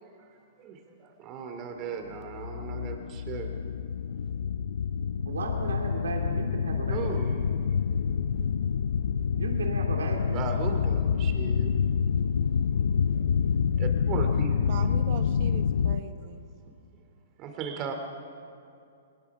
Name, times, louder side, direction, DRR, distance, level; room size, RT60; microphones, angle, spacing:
voice 1, 0.0-0.3 0.6-3.5 6.9-7.5 7.9-8.5 10.3-11.8 13.1-13.2 13.7-14.7 17.4-17.9, right 5 dB, 30° right, 5 dB, 2.7 m, -37 dB
sound 1, 2.1-16.0, left 7 dB, 75° left, 0.6 m, -27 dB
voice 2, 5.3-7.4 9.3-10.5, right 3 dB, 85° right, 2 dB, 2.6 m, -35 dB
voice 3, 14.7-16.4, right 9 dB, 50° right, 8 dB, 1.2 m, -40 dB
21.5 x 21.0 x 6.0 m, 2.5 s
hypercardioid pair, 135°, 0 cm